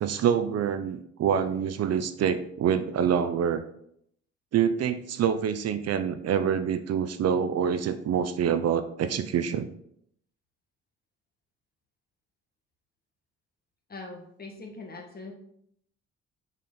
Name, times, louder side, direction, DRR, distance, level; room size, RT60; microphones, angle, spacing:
voice 1, 0.0-3.6 4.5-9.7, right 8 dB, 55° right, 11 dB, 0.5 m, -26 dB
voice 2, 13.9-15.3, left 3 dB, 30° left, 2 dB, 1.6 m, -42 dB
7.1 x 4.2 x 3.9 m, 0.71 s
cardioid pair, 90°, 30 cm